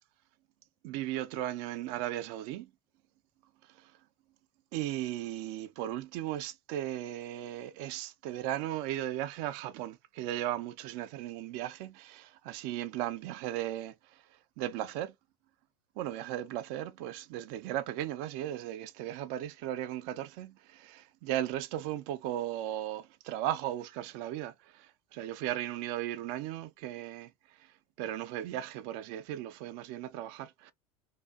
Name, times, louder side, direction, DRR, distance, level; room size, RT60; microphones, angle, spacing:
voice 1, 0.8-2.7 3.7-3.9 4.7-15.1 16.0-30.7, right 13 dB, 55° right, 0.4 m, -36 dB
2.6 x 2.3 x 2.3 m
hypercardioid pair, 85°, 20 cm